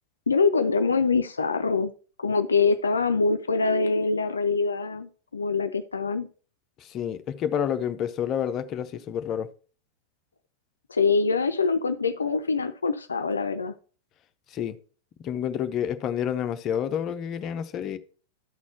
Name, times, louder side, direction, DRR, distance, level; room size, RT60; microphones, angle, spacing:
voice 1, 0.3-1.9 2.2-6.3 10.9-13.7, left 4 dB, 75° left, 0.4 m, -24 dB
voice 2, 6.8-9.5 14.5-14.8 15.2-18.0, left 9 dB, 35° left, 0.7 m, -29 dB
12.0 x 4.2 x 4.3 m
figure-of-eight pair, 90°, 0 cm